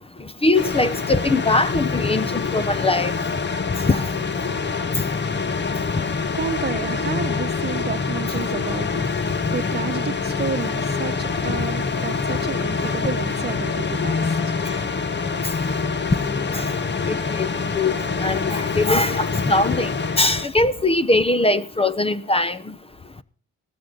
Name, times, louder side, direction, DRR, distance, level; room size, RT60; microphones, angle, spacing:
voice 1, 0.4-3.1 3.8-4.1 4.9-5.0 16.5-16.7 17.1-17.5 17.7-22.8, left 2 dB, 20° left, 0.9 m, -21 dB
sound 1, 0.5-20.5, left 4 dB, 35° left, 1.4 m, -25 dB
voice 2, 6.3-14.9, right 6 dB, 35° right, 1.2 m, -31 dB
17.0 x 13.0 x 4.0 m
cardioid pair, 90°, 30 cm